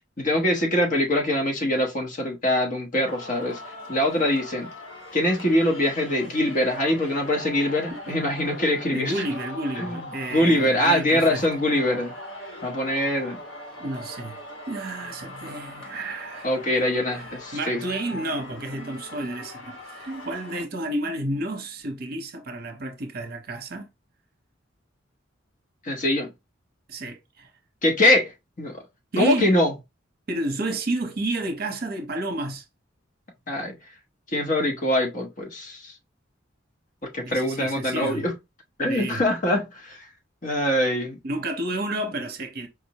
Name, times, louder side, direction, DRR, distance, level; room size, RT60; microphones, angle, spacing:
voice 1, 0.2-3.6 3.9-4.7 5.1-9.1 9.8-12.1 12.6-13.4 16.4-17.8 25.8-26.3 27.8-28.3 28.6-28.8 29.2-29.7 33.5-33.8 34.3-35.9 37.1-38.3 38.8-40.0 40.4-41.2, left 1 dB, 45° left, 0.9 m, -23 dB
Singing, 3.1-20.6, left 1 dB, 75° left, 1.2 m, -40 dB
voice 2, 8.9-11.4 13.8-14.4 14.7-16.5 17.1-23.9 26.9-27.5 29.1-29.5 30.3-32.6 37.2-38.3 38.9-39.2 41.2-42.7, right 1 dB, 50° right, 0.7 m, -31 dB
4.9 x 2.0 x 2.8 m
head